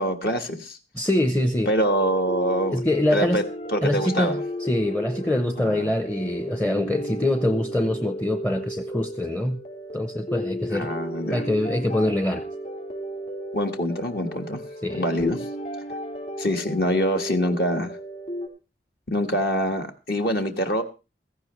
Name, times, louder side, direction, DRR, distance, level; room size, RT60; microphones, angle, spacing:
voice 1, 0.0-0.8 1.7-2.8 3.1-3.4 3.7-4.4 5.6-5.9 10.7-11.4 13.5-14.6 14.9-15.5 16.4-17.9 19.1-20.8, equal, 60° left, 4 dB, 1.5 m, -25 dB
voice 2, 0.9-1.7 2.7-3.4 3.8-9.6 9.9-10.9 11.3-12.4 14.8-15.1, left 1 dB, 10° left, 7 dB, 0.6 m, -24 dB
sound 1, 1.4-18.5, equal, 40° left, 3.9 m, -34 dB
15.5 x 15.0 x 3.1 m, 0.30 s
head